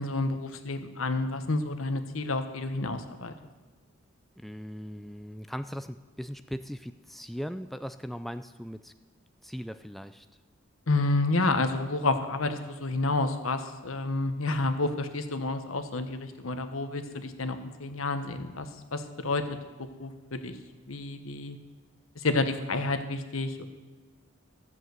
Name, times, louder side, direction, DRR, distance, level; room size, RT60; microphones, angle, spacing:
voice 1, 0.0-3.3 10.9-20.6 20.9-21.6 22.1-23.6, left 2 dB, 90° left, 9 dB, 1.1 m, -30 dB
voice 2, 4.4-8.9 9.4-10.3, equal, ahead, 10 dB, 0.3 m, -39 dB
14.0 x 7.5 x 7.9 m, 1.3 s
head